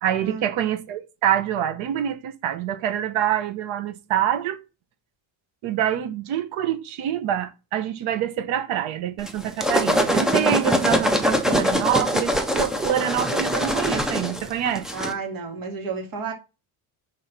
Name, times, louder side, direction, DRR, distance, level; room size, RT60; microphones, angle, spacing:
voice 1, 0.0-4.6 5.6-14.9, right 10 dB, 80° right, 1.1 m, -26 dB
sound 1, 9.3-15.1, equal, ahead, 0.3 m, -23 dB
voice 2, 14.9-16.3, right 5 dB, 45° right, 2.0 m, -32 dB
5.4 x 3.8 x 5.8 m
cardioid pair, 180°, 48 cm